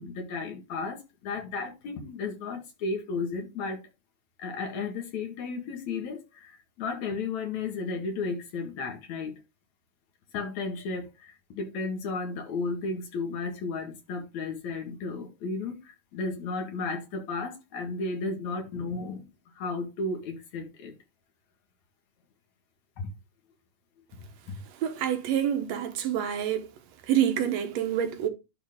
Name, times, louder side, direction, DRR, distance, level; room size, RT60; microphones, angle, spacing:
voice 1, 0.0-3.8 4.4-9.4 10.3-19.3 19.6-20.9 23.0-23.1 24.5-24.6, left 3 dB, 60° left, 3.0 m, -34 dB
voice 2, 24.8-26.7 27.1-28.3, right 10 dB, 65° right, 2.1 m, -27 dB
11.5 x 4.1 x 3.6 m
omnidirectional pair, 3.7 m